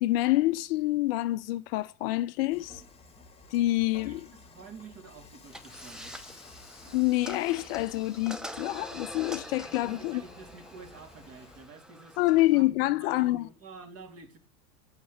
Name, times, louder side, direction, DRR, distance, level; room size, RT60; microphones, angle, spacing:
voice 1, 0.0-2.8 3.5-4.2 6.9-10.2 12.2-13.5, left 18 dB, 45° left, 0.6 m, -27 dB
Dishes pots and pans / Frying (food), 2.5-11.7, left 4 dB, 15° left, 1.8 m, -53 dB
voice 2, 4.0-6.2 9.7-12.2 12.5-14.4, right 4 dB, 35° right, 2.3 m, -49 dB
sound 1, 5.5-12.6, equal, ahead, 0.8 m, -45 dB
8.3 x 5.9 x 8.1 m
figure-of-eight pair, 75°, 42 cm